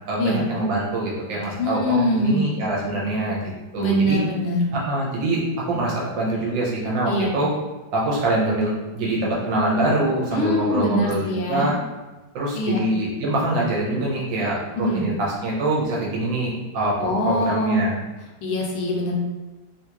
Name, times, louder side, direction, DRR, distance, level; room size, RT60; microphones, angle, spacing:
voice 1, 0.1-4.2 4.7-5.4 5.7-7.5 7.9-11.7 12.3-18.0, right 2 dB, 70° right, -4 dB, 1.5 m, -24 dB
voice 2, 1.6-2.5 3.8-4.6 7.1-7.3 10.3-11.7 12.5-12.8 14.7-15.0 17.0-17.9 18.4-19.1, left 1 dB, 80° left, 0 dB, 1.4 m, -23 dB
3.6 x 2.4 x 2.9 m, 1.1 s
omnidirectional pair, 2.2 m